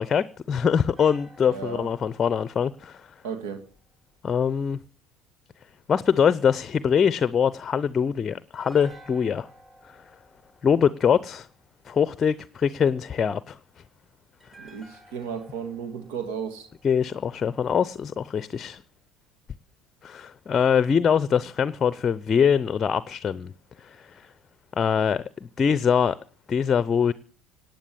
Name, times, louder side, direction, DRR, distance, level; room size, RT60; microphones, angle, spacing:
voice 1, 0.0-3.1 4.2-4.8 5.9-9.5 10.6-11.5 11.9-13.6 16.8-18.8 20.0-23.5 23.8-24.3 24.8-25.2 25.6-26.2 26.5-27.1, left 7 dB, 35° left, 0.6 m, -23 dB
sound 1, 0.9-4.1 8.5-11.7 14.4-17.6 17.9-18.0, right 1 dB, 10° right, 3.2 m, -54 dB
voice 2, 1.5-1.9 3.2-3.6 14.6-16.7, right 7 dB, 70° right, 1.7 m, -34 dB
18.0 x 9.2 x 6.9 m
hypercardioid pair, 70°, 0 cm